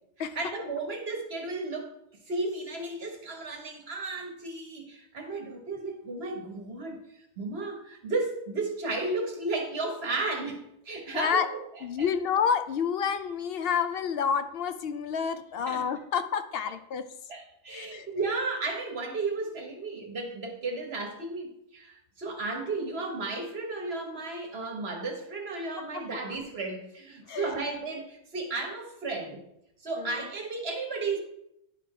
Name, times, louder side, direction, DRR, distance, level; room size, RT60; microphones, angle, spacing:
voice 1, 0.2-1.9 2.3-7.0 7.4-11.6 12.0-12.1 15.7-15.8 17.3-29.4 29.8-31.2, right 3 dB, 60° right, 2 dB, 1.5 m, -34 dB
voice 2, 11.1-11.5 11.8-17.1 17.7-18.1 25.9-26.0 27.3-27.5 30.0-30.3, left 7 dB, 60° left, 10 dB, 0.7 m, -29 dB
10.0 x 3.8 x 4.3 m, 0.79 s
omnidirectional pair, 1.2 m